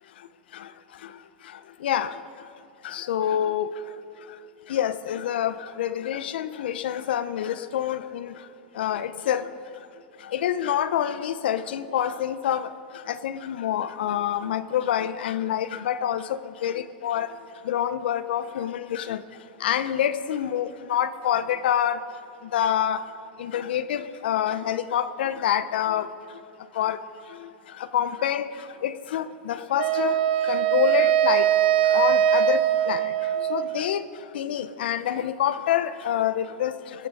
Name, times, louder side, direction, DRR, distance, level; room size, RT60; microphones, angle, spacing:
voice 1, 1.8-2.1 2.8-3.7 4.7-8.3 8.8-9.5 10.3-12.7 13.1-16.3 16.6-17.3 17.7-19.2 19.6-22.0 22.5-23.0 23.4-26.1 26.8-27.0 27.9-28.5 28.8-30.1 30.5-31.5 31.9-32.6 32.9-33.1 33.5-34.0 34.3-36.7, left 10 dB, 80° left, 14 dB, 0.7 m, -26 dB
Wind instrument woodwind instrument, 29.8-33.9, right 10 dB, 75° right, 0.6 m, -22 dB
20.0 x 7.8 x 4.8 m, 2.4 s
supercardioid pair, 135°, 5 cm